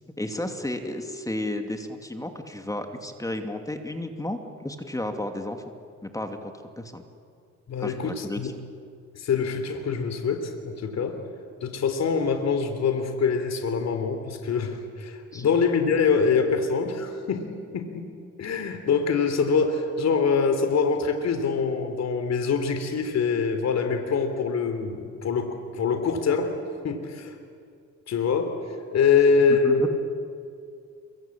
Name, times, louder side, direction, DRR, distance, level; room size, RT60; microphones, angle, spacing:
voice 1, 0.2-5.6 6.0-7.0 7.8-8.5 15.3-15.6 29.6-30.0, left 1 dB, 10° left, 5 dB, 2.6 m, -33 dB
voice 2, 7.7-8.5 9.1-11.2 11.6-26.5 26.8-27.3 28.1-28.6 28.9-30.0, left 5 dB, 60° left, 7 dB, 3.4 m, -24 dB
27.5 x 24.5 x 8.8 m, 2.3 s
cardioid pair, 90°, 30 cm